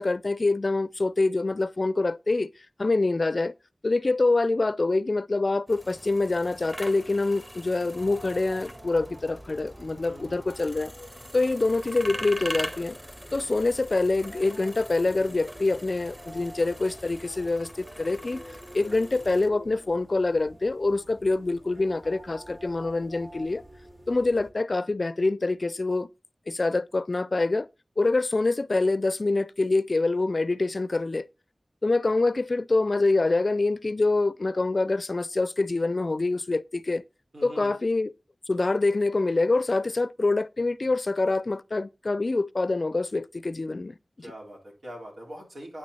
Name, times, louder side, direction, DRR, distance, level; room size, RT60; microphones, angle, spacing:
voice 1, 0.0-2.5 2.8-3.5 3.8-10.9 11.3-13.0 13.3-18.4 18.7-23.6 24.1-26.1 26.5-27.7 28.0-31.3 31.8-37.0 37.4-38.1 38.5-44.0, left 3 dB, 55° left, 0.4 m, -25 dB
sound 1, 5.7-19.5, equal, 10° right, 1.5 m, -42 dB
sound 2, 7.9-24.5, right 1 dB, 55° right, 3.4 m, -48 dB
voice 2, 10.1-10.6 37.3-37.8 44.2-45.8, right 1 dB, 85° right, 4.0 m, -43 dB
9.4 x 6.1 x 4.1 m
wide cardioid pair, 55°, 0 cm